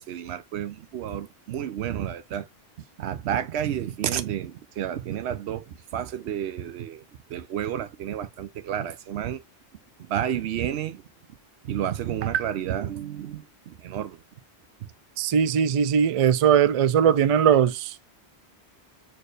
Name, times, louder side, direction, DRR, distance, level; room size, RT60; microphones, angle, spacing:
voice 1, 0.0-2.5 3.0-5.6 5.9-7.0 7.3-9.4 10.1-11.0 11.6-14.2, right 10 dB, 80° right, 0.9 m, -30 dB
voice 2, 15.2-17.9, right 8 dB, 60° right, 0.3 m, -20 dB
4.3 x 3.2 x 3.2 m
omnidirectional pair, 1.1 m